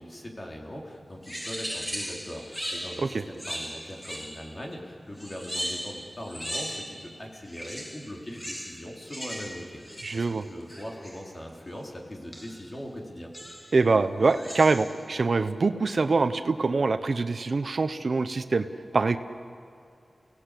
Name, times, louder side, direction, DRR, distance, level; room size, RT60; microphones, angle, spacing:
voice 1, 0.0-13.3, equal, 30° left, 0 dB, 4.0 m, -41 dB
sound 1, 1.2-4.6 5.2-7.2 7.5-11.3 12.3-12.7 13.3-13.8 14.2-15.0, equal, 5° left, 2.4 m, -38 dB
voice 2, 10.0-10.4 13.7-18.7 18.9-19.2, right 3 dB, 65° right, 10 dB, 0.9 m, -24 dB
29.5 x 18.0 x 8.5 m, 2.5 s
wide cardioid pair, 70°, 0 cm